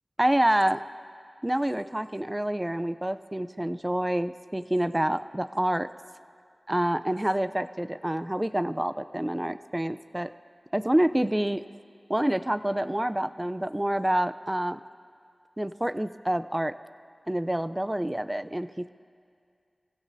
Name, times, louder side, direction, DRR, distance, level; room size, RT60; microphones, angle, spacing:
voice 1, 0.2-0.8 1.4-5.9 6.7-10.3 10.7-11.6 12.1-14.8 15.6-16.7 17.3-18.9, right 1 dB, 20° right, 11 dB, 0.5 m, -27 dB
26.5 x 16.0 x 2.7 m, 2.3 s
cardioid pair, 40°, 0 cm